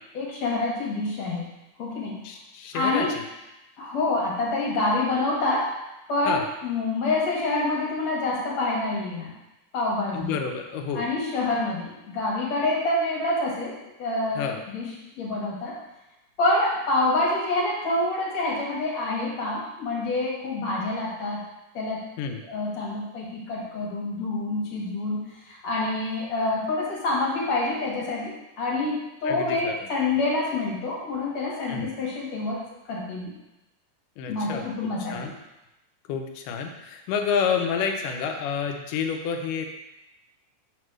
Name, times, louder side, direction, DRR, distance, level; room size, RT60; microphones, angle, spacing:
voice 1, 0.1-1.4 1.8-2.2 2.7-3.1 3.8-5.7 6.1-9.3 9.7-10.4 10.9-14.9 15.2-15.8 16.4-21.4 21.7-22.1 22.5-25.2 25.5-32.6 32.9-33.3 34.3-35.3, left 2 dB, 55° left, -4 dB, 2.5 m, -27 dB
voice 2, 2.2-3.2 6.3-6.5 10.1-11.1 14.4-14.6 22.2-22.5 29.2-29.9 31.7-31.9 34.2-35.3 36.1-39.7, left 6 dB, 80° left, 4 dB, 2.1 m, -29 dB
7.2 x 3.2 x 6.0 m, 0.96 s
omnidirectional pair, 3.9 m